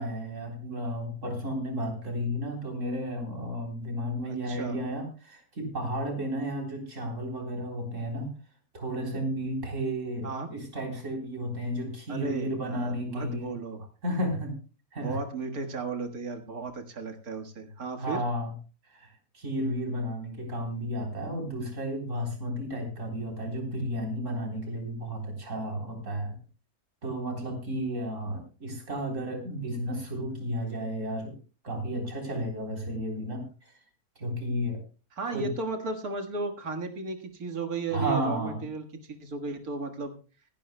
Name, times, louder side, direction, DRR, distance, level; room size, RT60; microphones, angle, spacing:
voice 1, 0.0-8.3 8.7-13.5 14.0-14.6 14.9-15.2 18.0-18.5 18.9-26.4 27.0-31.3 31.6-33.5 34.2-34.8 35.2-35.5 37.9-38.6, equal, 55° right, 1 dB, 4.1 m, -33 dB
voice 2, 4.3-4.8 10.2-10.5 12.1-13.9 15.0-18.2 35.1-40.1, right 3 dB, 75° right, 5 dB, 2.1 m, -35 dB
26.0 x 10.5 x 2.2 m, 0.34 s
omnidirectional pair, 1.6 m